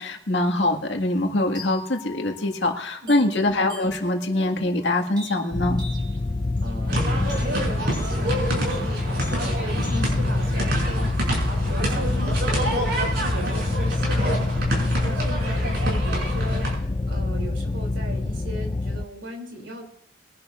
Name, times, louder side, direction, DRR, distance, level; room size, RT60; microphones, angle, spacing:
voice 1, 0.0-5.8, left 2 dB, 70° left, 3 dB, 1.9 m, -23 dB
sound 1, 1.5-11.6, left 2 dB, 25° right, 4.3 m, -45 dB
voice 2, 3.0-3.3 6.6-11.2 11.7-14.6 15.0-19.8, right 1 dB, 75° right, 3 dB, 3.1 m, -37 dB
sound 2, 5.5-19.0, left 2 dB, 25° left, 0.3 m, -26 dB
sound 3, 6.9-16.7, right 1 dB, 55° right, 5.8 m, -27 dB
22.0 x 11.0 x 2.5 m, 0.72 s
head